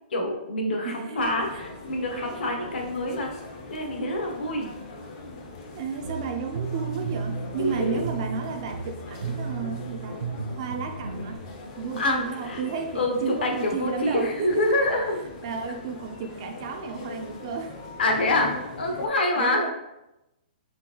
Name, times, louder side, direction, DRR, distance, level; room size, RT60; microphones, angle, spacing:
voice 1, 0.1-3.3 3.7-4.7 7.6-8.0 12.0-12.2 12.4-12.6 12.9-15.2 18.0-18.5 18.8-19.6, left 2 dB, 70° left, 1 dB, 1.1 m, -26 dB
voice 2, 0.8-1.3 5.7-10.2 10.5-11.4 11.8-14.8 15.4-17.8 18.1-18.2 19.4-19.7, right 6 dB, 30° right, 5 dB, 0.3 m, -33 dB
sound 1, 1.2-19.1, left 3 dB, 25° left, 0.5 m, -41 dB
sound 2, 6.0-11.4, right 5 dB, 70° right, 0.7 m, -34 dB
4.1 x 3.8 x 2.9 m, 0.93 s
hypercardioid pair, 175°, 5 cm